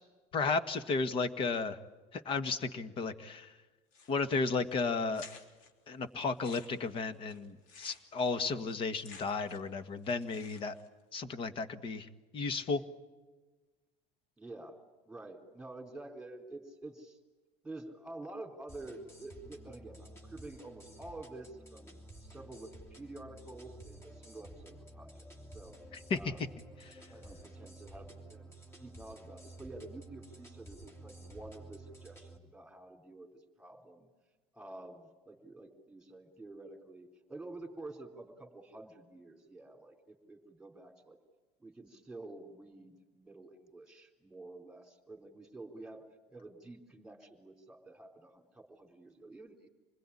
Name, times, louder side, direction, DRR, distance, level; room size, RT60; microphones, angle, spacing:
voice 1, 0.3-1.8 2.1-3.5 4.1-5.3 5.9-10.7 11.1-12.8 26.1-26.2 26.8-27.0, left 4 dB, 35° left, 11 dB, 1.7 m, -33 dB
sound 1, 3.9-4.4 4.7-4.8 5.1-5.7 6.2-9.8 10.0-10.9, left 4 dB, 65° left, 3.7 m, -53 dB
voice 2, 14.4-17.2 17.6-25.7 26.1-26.5 27.1-34.1 34.5-41.2 41.6-46.0 46.3-49.7, right 2 dB, 5° right, 4 dB, 3.8 m, -49 dB
sound 2, 18.7-32.4, right 1 dB, 15° left, 3.0 m, -52 dB
27.5 x 21.0 x 9.9 m, 1.3 s
cardioid pair, 140°, 15 cm